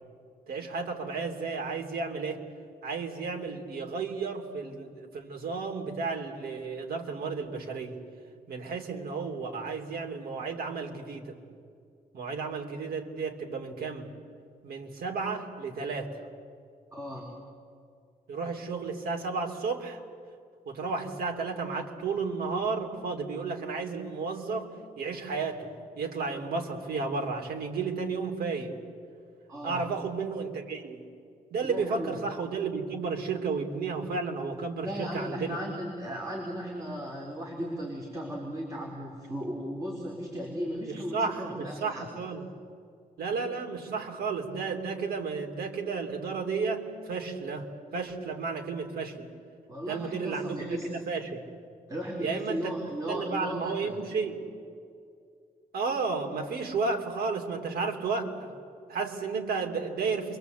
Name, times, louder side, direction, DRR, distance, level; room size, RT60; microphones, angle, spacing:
voice 1, 0.5-2.4 2.8-8.0 8.5-11.4 12.1-14.1 14.6-16.2 18.3-20.0 20.7-28.8 29.6-31.0 31.5-35.6 40.9-42.5 43.2-47.7 47.9-49.3 49.9-50.8 51.1-51.4 52.2-52.7 53.1-54.4 55.7-58.6 58.9-60.4, right 4 dB, 90° right, 3 dB, 3.5 m, -33 dB
voice 2, 16.9-17.3 29.5-29.9 31.7-32.2 34.8-42.1 49.7-50.9 51.9-54.0, equal, 20° right, -2 dB, 4.2 m, -36 dB
28.5 x 24.5 x 8.3 m, 2.3 s
wide cardioid pair, 180°, 15 cm